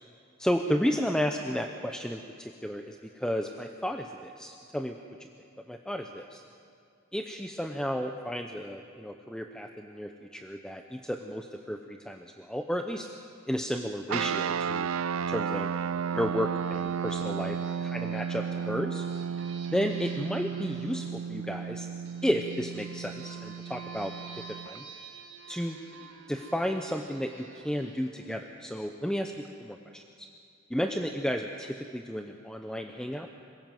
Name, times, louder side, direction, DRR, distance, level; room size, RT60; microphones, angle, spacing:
voice 1, 0.4-5.3 5.7-6.4 7.1-13.1 13.5-14.9 15.3-15.7 16.1-19.0 19.7-21.9 22.2-24.8 25.5-25.8 26.3-29.3 29.6-30.3 30.7-33.3, equal, 5° left, 4 dB, 0.7 m, -33 dB
sound 1, 14.1-24.8, right 7 dB, 90° right, 0.4 m, -33 dB
sound 2, 16.0-29.3, right 5 dB, 65° right, 2.0 m, -50 dB
26.0 x 17.5 x 7.8 m, 2.5 s
head